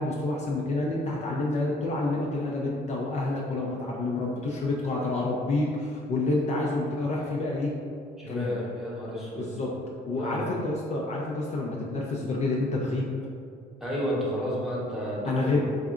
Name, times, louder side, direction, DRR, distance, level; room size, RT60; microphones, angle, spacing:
voice 1, 0.0-7.7 8.3-8.6 9.4-9.7 10.1-13.1 15.2-15.6, left 2 dB, 45° left, -3 dB, 0.5 m, -28 dB
voice 2, 8.2-9.5 10.1-10.5 13.8-15.6, equal, ahead, -7 dB, 1.0 m, -31 dB
3.7 x 3.3 x 2.4 m, 2.3 s
cardioid pair, 110°, 17 cm